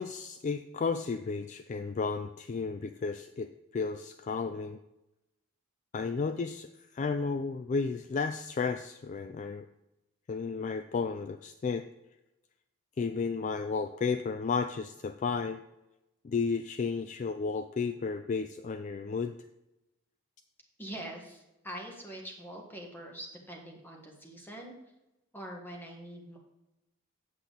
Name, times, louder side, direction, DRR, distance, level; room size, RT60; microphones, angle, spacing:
voice 1, 0.0-4.8 5.9-9.7 10.3-11.8 13.0-15.6 16.2-19.4, left 4 dB, 35° left, 9 dB, 0.3 m, -33 dB
voice 2, 20.8-24.7 25.3-26.4, right 1 dB, 10° left, 0 dB, 1.6 m, -44 dB
8.4 x 7.4 x 4.0 m, 0.94 s
head